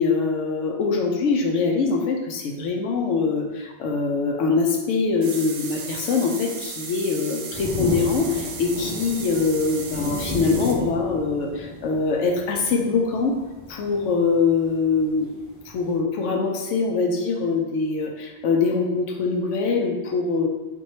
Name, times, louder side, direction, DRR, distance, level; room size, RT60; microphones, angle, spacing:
voice 1, 0.0-13.4 13.7-15.3 15.6-20.5, left 4 dB, 90° left, 1 dB, 1.0 m, -23 dB
sound 1, 5.2-10.8, right 5 dB, 85° right, 0.9 m, -36 dB
sound 2, 7.5-16.0, left 1 dB, 40° right, 1.4 m, -33 dB
4.6 x 2.6 x 2.7 m, 1.1 s
omnidirectional pair, 1.2 m